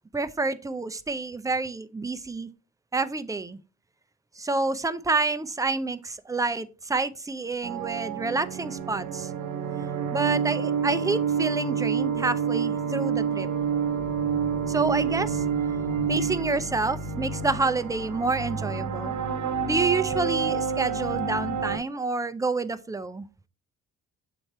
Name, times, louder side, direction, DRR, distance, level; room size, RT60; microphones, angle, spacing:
voice 1, 0.1-2.5 2.9-3.6 4.4-9.3 10.1-13.5 14.7-15.4 16.1-19.1 19.6-23.3, right 3 dB, 10° right, 0.5 m, -28 dB
sound 1, 7.6-21.8, right 6 dB, 75° right, 0.9 m, -28 dB
7.7 x 3.2 x 4.2 m
cardioid pair, 90°, 30 cm